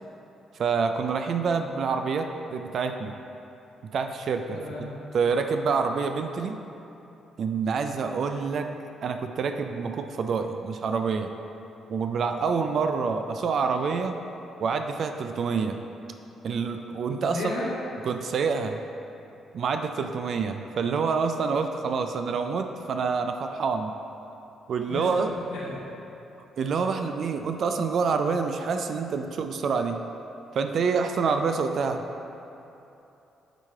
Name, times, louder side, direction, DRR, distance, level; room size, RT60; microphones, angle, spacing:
voice 1, 0.5-3.2 3.9-4.6 5.1-6.6 7.4-8.7 9.0-11.3 11.9-14.2 14.6-15.8 16.4-17.4 18.0-18.8 19.5-23.9 24.7-25.3 26.6-30.0 30.5-32.0, right 5 dB, 60° right, 6 dB, 0.3 m, -27 dB
voice 2, 4.5-4.9 17.1-17.7 24.9-25.2 25.5-25.8, left 2 dB, 80° left, -8 dB, 1.2 m, -33 dB
9.0 x 3.2 x 4.4 m, 2.9 s
cardioid pair, 90°, 0 cm